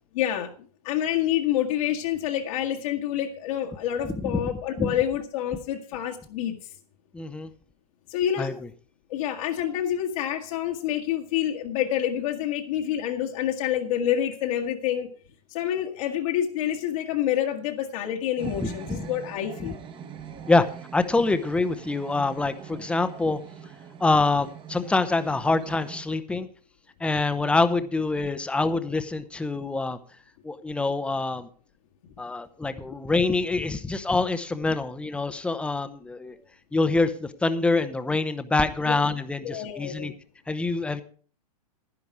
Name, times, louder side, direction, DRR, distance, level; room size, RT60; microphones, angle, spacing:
voice 1, 0.1-0.5 0.8-6.7 8.1-8.5 9.1-15.1 15.5-19.8 38.9-39.0 39.4-40.1, left 11 dB, 60° left, 0 dB, 1.7 m, -27 dB
voice 2, 7.1-7.5 8.4-8.6 18.6-19.0 20.5-20.6 20.9-23.4 24.0-26.5 27.0-30.0 30.4-31.5 32.2-36.4 36.7-40.1 40.5-41.0, left 3 dB, 5° left, 11 dB, 0.8 m, -25 dB
sound 1, 18.4-26.0, right 8 dB, 25° right, 1.2 m, -43 dB
11.0 x 10.5 x 4.7 m, 0.44 s
hypercardioid pair, 125°, 20 cm